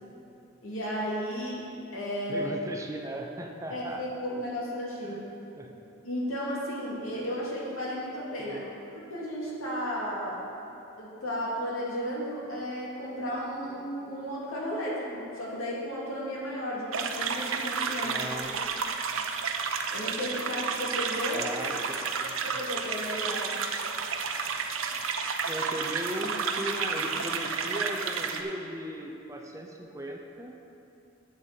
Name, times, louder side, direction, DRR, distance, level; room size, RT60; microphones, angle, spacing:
voice 1, 0.6-1.7 1.9-2.6 3.7-5.2 6.0-8.6 8.9-10.4 11.0-18.6 19.9-21.4 22.4-23.5, equal, 80° left, -5 dB, 2.4 m, -34 dB
voice 2, 2.3-4.4 5.0-5.2 5.5-5.7 8.4-8.6 18.0-18.6 21.3-22.6 24.9-25.0 25.4-30.6, right 1 dB, 15° right, 1 dB, 0.6 m, -38 dB
sound 1, 16.9-28.4, right 5 dB, 70° right, 0.6 m, -31 dB
11.5 x 8.0 x 4.1 m, 2.8 s
head